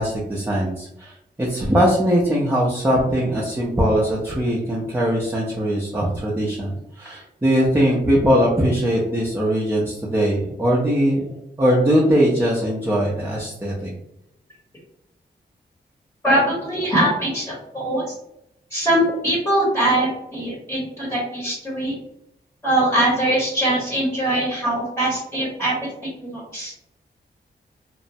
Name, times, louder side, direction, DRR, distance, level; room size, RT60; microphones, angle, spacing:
voice 1, 0.0-11.2 11.6-13.9, equal, 10° right, -4 dB, 0.5 m, -20 dB
voice 2, 16.2-18.1 18.7-21.9 22.6-25.7 26.2-26.7, right 1 dB, 10° left, -5 dB, 0.8 m, -22 dB
2.9 x 2.1 x 2.6 m, 0.80 s
wide cardioid pair, 140°, 18 cm